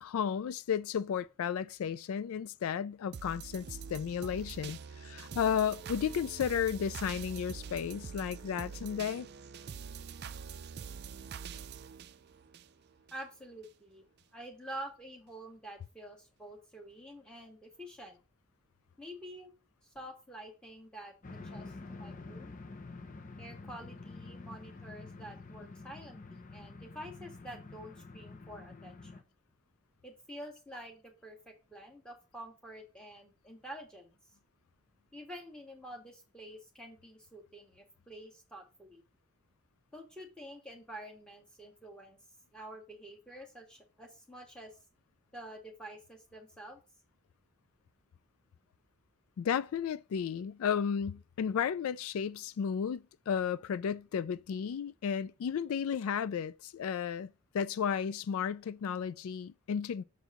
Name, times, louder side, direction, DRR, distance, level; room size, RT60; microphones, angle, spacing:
voice 1, 0.0-9.3 49.4-60.0, left 7 dB, 75° left, 0.3 m, -33 dB
sound 1, 3.1-13.2 13.6-13.7, right 6 dB, 45° right, 0.4 m, -45 dB
voice 2, 13.1-14.0 14.3-18.2 19.0-19.5 19.8-22.5 23.4-29.2 30.0-34.2 35.1-39.0 39.9-42.2 42.5-44.8 45.3-46.8, right 1 dB, 5° left, 1.7 m, -48 dB
sound 2, 21.2-29.2, left 3 dB, 35° left, 0.7 m, -48 dB
6.8 x 4.5 x 5.0 m
head